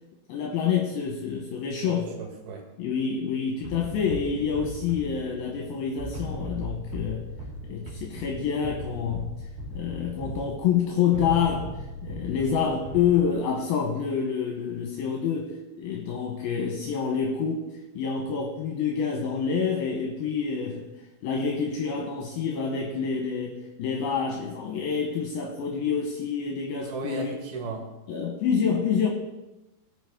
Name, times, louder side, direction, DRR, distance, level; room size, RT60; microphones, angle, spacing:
voice 1, 0.3-2.1 2.8-7.2 7.7-9.3 9.7-11.7 12.0-17.7 18.0-20.9 21.2-27.4 28.1-29.1, left 6 dB, 75° left, 1 dB, 2.7 m, -27 dB
voice 2, 1.9-2.6 26.8-27.9, right 3 dB, 70° right, 2 dB, 3.4 m, -35 dB
sound 1, 3.6-13.6, equal, 50° right, 4.1 m, -38 dB
18.0 x 6.5 x 3.7 m, 1.0 s
omnidirectional pair, 4.7 m